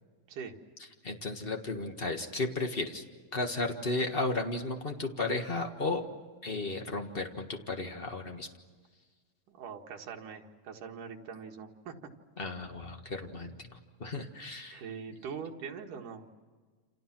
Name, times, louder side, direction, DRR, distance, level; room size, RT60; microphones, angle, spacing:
voice 1, 1.0-3.0 3.3-6.1 6.4-8.5 12.4-14.8, left 2 dB, 40° left, 4 dB, 0.7 m, -34 dB
voice 2, 9.5-11.9 14.7-16.3, right 6 dB, 80° right, 2 dB, 3.4 m, -42 dB
29.0 x 28.5 x 6.1 m, 1.5 s
omnidirectional pair, 3.7 m